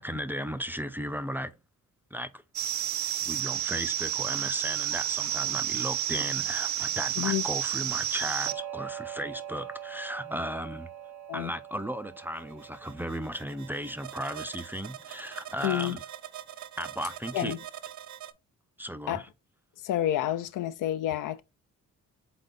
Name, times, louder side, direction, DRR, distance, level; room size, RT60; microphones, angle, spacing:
voice 1, 0.0-1.5 2.1-2.4 3.2-10.9 11.3-16.0 16.8-17.5 18.8-19.3, equal, 5° right, 0.5 m, -35 dB
sound 1, 2.5-18.3, right 11 dB, 60° right, 0.6 m, -34 dB
voice 2, 15.6-16.0 17.3-17.6 19.1-19.2 19.8-21.4, left 12 dB, 70° left, 0.5 m, -29 dB
4.0 x 4.0 x 3.3 m
supercardioid pair, 60°, 32 cm